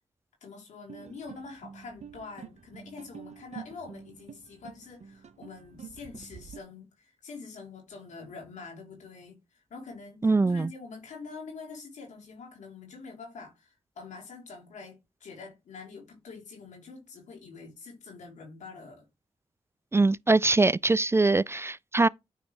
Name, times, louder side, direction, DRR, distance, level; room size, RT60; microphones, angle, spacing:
voice 1, 0.4-9.4 9.7-19.0, left 4 dB, 90° left, 3.0 m, -45 dB
sound 1, 0.9-6.6, right 7 dB, 70° right, 0.7 m, -47 dB
voice 2, 10.2-10.7 19.9-22.1, right 3 dB, 20° right, 0.3 m, -23 dB
9.0 x 3.2 x 4.8 m
cardioid pair, 45°, 12 cm